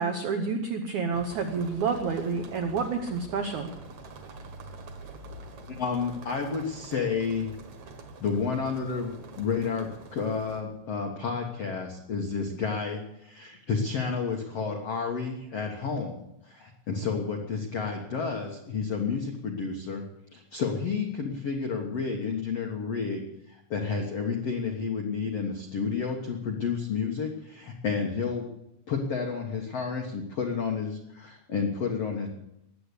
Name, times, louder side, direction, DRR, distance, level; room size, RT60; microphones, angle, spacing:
voice 1, 0.0-3.7, right 5 dB, 85° right, 5 dB, 1.6 m, -29 dB
sound 1, 1.1-10.6, right 3 dB, 55° right, 2.4 m, -45 dB
voice 2, 5.8-7.5 8.2-20.0 20.3-23.2 23.5-28.5 28.9-32.3, left 5 dB, 85° left, 2 dB, 1.3 m, -31 dB
20.5 x 8.4 x 8.3 m, 0.82 s
omnidirectional pair, 5.2 m